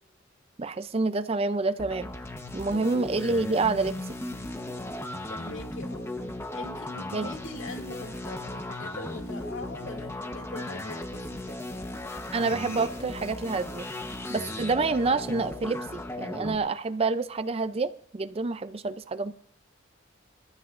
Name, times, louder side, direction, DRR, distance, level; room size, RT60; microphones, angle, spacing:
voice 1, 0.6-2.1 2.5-4.0 7.1-7.3 12.3-13.9 14.3-19.3, right 3 dB, 30° right, 0.4 m, -28 dB
sound 1, 1.8-16.6, left 1 dB, 15° left, 1.0 m, -36 dB
voice 2, 5.3-11.6, left 2 dB, 70° left, 2.4 m, -42 dB
27.0 x 14.0 x 2.5 m
head